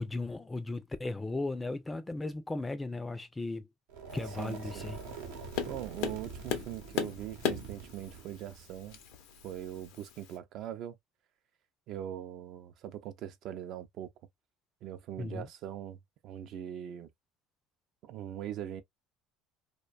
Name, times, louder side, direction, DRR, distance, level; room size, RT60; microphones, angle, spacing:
voice 1, 0.0-3.7 4.1-5.0 15.2-15.5, left 2 dB, 15° left, 0.4 m, -36 dB
sound 1, 3.9-9.9, right 5 dB, 90° right, 0.8 m, -45 dB
Tap, 4.1-10.4, left 9 dB, 75° left, 0.6 m, -39 dB
voice 2, 4.4-4.9 5.7-9.0 9.4-11.0 11.9-14.1 14.8-17.1 18.0-18.8, right 11 dB, 55° right, 0.4 m, -41 dB
2.5 x 2.2 x 2.3 m
supercardioid pair, 105°, 0 cm